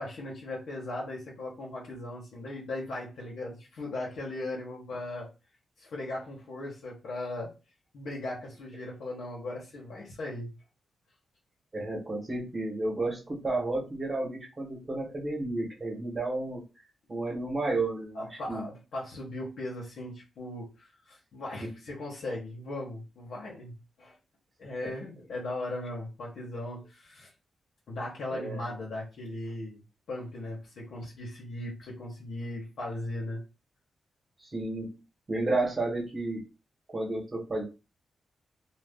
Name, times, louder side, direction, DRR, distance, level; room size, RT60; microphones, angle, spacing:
voice 1, 0.0-5.3 5.8-7.5 7.9-10.5 18.1-23.7 24.0-24.2 24.6-27.3 27.9-29.8 30.1-33.4, left 2 dB, 75° left, -3 dB, 1.0 m, -38 dB
voice 2, 11.7-16.6 17.1-18.6 21.6-21.7 24.8-24.9 28.3-28.6 34.4-35.0 35.3-36.5 36.9-37.6, right 2 dB, 25° right, 0 dB, 1.1 m, -32 dB
2.5 x 2.3 x 3.5 m, 0.29 s
wide cardioid pair, 125°, 0 cm